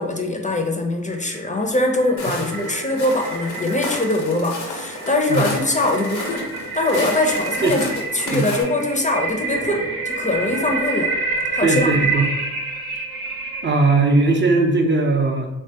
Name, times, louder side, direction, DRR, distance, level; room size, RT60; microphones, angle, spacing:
voice 1, 0.0-6.5 6.7-11.1 11.5-11.9, left 2 dB, 20° left, 2 dB, 0.5 m, -22 dB
sound 1, 1.3-14.7, right 3 dB, 85° right, 0.6 m, -29 dB
Walk footsteps, 2.2-8.6, left 2 dB, 80° left, 0.7 m, -32 dB
voice 2, 11.6-12.3 13.6-15.5, right 3 dB, 30° right, 2 dB, 0.5 m, -18 dB
3.0 x 2.3 x 2.8 m, 0.98 s
supercardioid pair, 40°, 37 cm